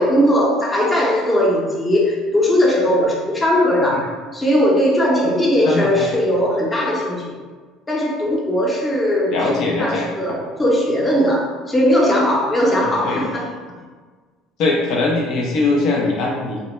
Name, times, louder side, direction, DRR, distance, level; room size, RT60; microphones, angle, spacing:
voice 1, 0.0-7.4 7.9-9.5 9.8-13.5, equal, 20° left, -3 dB, 0.6 m, -18 dB
voice 2, 5.6-6.1 9.3-10.1 12.8-13.2 14.6-16.6, left 3 dB, 65° left, -1 dB, 0.3 m, -21 dB
2.1 x 2.0 x 3.0 m, 1.5 s
supercardioid pair, 85°, 0 cm